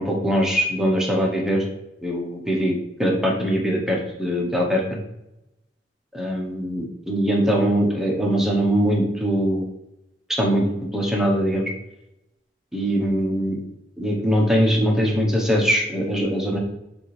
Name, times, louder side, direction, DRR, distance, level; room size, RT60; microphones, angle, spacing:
voice 1, 0.0-1.6 2.0-5.0 6.1-9.7 10.3-10.6 10.9-11.7 12.7-13.6 14.0-16.6, equal, 5° right, 0 dB, 0.8 m, -22 dB
6.5 x 2.5 x 3.1 m, 0.89 s
head